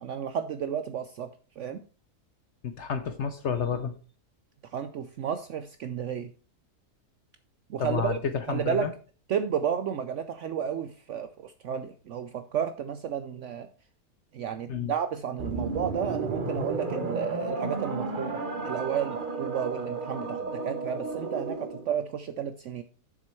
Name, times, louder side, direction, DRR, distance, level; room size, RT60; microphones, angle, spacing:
voice 1, 0.0-1.8 4.7-6.3 7.7-8.2 8.5-8.9 9.3-13.7 14.3-22.8, right 8 dB, 70° right, 9 dB, 0.7 m, -32 dB
voice 2, 2.6-3.9 7.8-8.9 14.7-14.9, left 7 dB, 60° left, 10 dB, 0.8 m, -30 dB
sound 1, 15.4-21.9, right 3 dB, 35° right, 1.0 m, -32 dB
7.5 x 6.5 x 4.4 m, 0.37 s
omnidirectional pair, 1.7 m